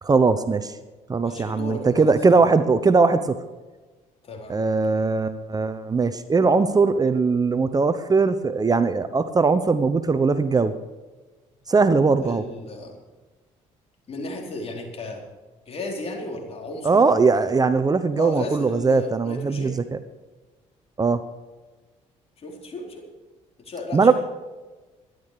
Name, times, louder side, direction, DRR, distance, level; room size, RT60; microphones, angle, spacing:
voice 1, 0.0-0.7 1.1-3.3 4.5-10.7 11.7-12.4 16.8-20.0 21.0-21.2 23.9-24.1, right 4 dB, 25° right, 11 dB, 0.9 m, -20 dB
voice 2, 1.2-2.3 4.2-4.6 12.2-13.0 14.1-15.2 15.7-17.0 18.1-19.8 22.4-23.0 23.6-24.1, left 2 dB, 45° left, 1 dB, 4.2 m, -34 dB
13.0 x 11.0 x 6.8 m, 1.2 s
cardioid pair, 85°, 14 cm